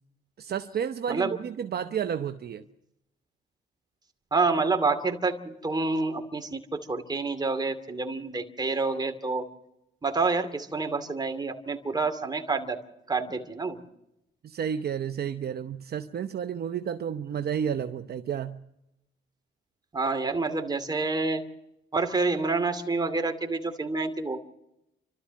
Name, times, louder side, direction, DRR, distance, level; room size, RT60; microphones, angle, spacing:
voice 1, 0.4-2.6 14.4-18.6, right 8 dB, 55° right, 8 dB, 0.9 m, -31 dB
voice 2, 4.3-9.5 10.0-12.8 13.1-13.8 19.9-21.4 21.9-24.4, right 3 dB, 20° right, 6 dB, 2.5 m, -28 dB
29.5 x 13.0 x 7.5 m, 0.86 s
cardioid pair, 90°, 20 cm